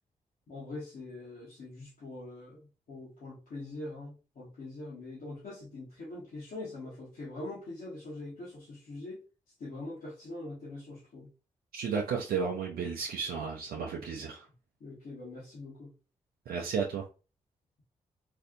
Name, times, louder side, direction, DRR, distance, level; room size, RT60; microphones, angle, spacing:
voice 1, 0.5-9.2 9.6-11.3 14.8-15.9, left 2 dB, 70° left, 1.5 m, -43 dB
voice 2, 11.7-14.4 16.5-17.0, right 6 dB, 80° right, 0.6 m, -33 dB
3.3 x 2.6 x 2.5 m
supercardioid pair, 40°, 15 cm